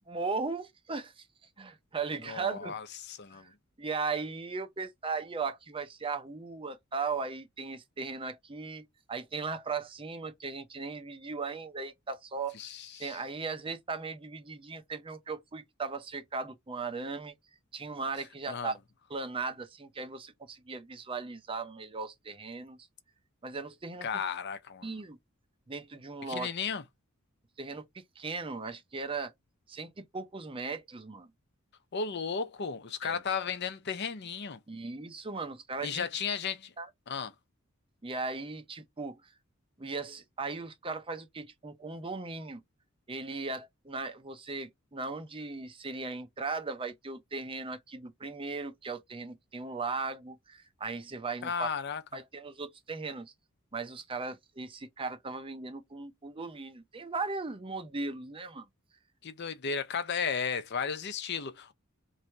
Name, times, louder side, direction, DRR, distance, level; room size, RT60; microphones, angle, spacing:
voice 1, 0.1-1.3 1.6-2.7 3.3-3.5 3.8-17.3 17.7-18.8 19.1-22.8 23.4-24.1 24.8-25.2 25.7-26.5 27.6-29.3 29.7-31.3 33.0-33.2 34.7-36.0 36.8-36.9 38.0-39.2 39.8-42.6 43.1-51.7 52.1-53.3 53.7-58.7, right 4 dB, 25° right, 0.6 m, -37 dB
voice 2, 2.2-3.5 12.5-13.2 18.5-18.7 24.0-24.9 26.3-26.8 31.9-34.6 35.8-36.7 37.1-37.3 51.4-52.0 59.2-61.7, left 6 dB, 55° left, 0.6 m, -34 dB
3.1 x 2.7 x 4.5 m
head